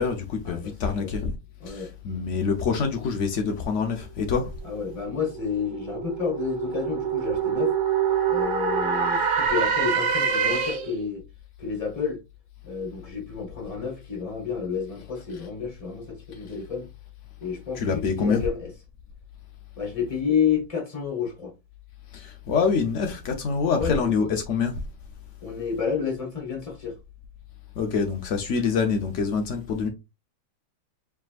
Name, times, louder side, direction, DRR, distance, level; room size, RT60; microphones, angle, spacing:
voice 1, 0.0-1.3 1.7-4.5 17.7-18.4 22.1-24.8 27.8-29.9, left 5 dB, 90° left, 0.6 m, -26 dB
voice 2, 1.6-1.9 4.6-7.7 8.3-11.2 11.6-12.2 12.6-16.9 17.4-18.7 19.8-21.5 23.8-24.1 25.4-27.0, left 6 dB, 20° left, 1.2 m, -30 dB
sound 1, 4.9-11.1, right 7 dB, 70° right, 0.7 m, -25 dB
4.6 x 3.6 x 2.4 m
omnidirectional pair, 2.2 m